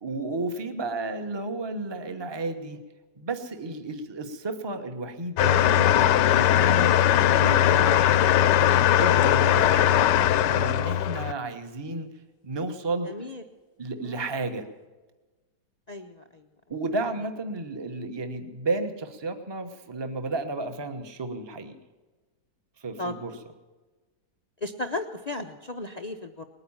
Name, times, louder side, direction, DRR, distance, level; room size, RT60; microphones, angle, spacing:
voice 1, 0.0-2.8 3.2-6.9 7.2-8.0 8.6-9.9 10.4-12.1 12.4-13.1 13.8-14.7 16.7-21.7 22.8-23.3, right 2 dB, 15° right, 7 dB, 1.0 m, -32 dB
sound 1, 5.4-11.3, left 11 dB, 80° left, 1.3 m, -20 dB
voice 2, 13.0-13.4 14.0-14.3 15.9-16.4 23.0-23.4 24.6-26.4, left 2 dB, 50° left, 7 dB, 0.4 m, -35 dB
20.0 x 9.6 x 7.2 m, 1.2 s
omnidirectional pair, 1.9 m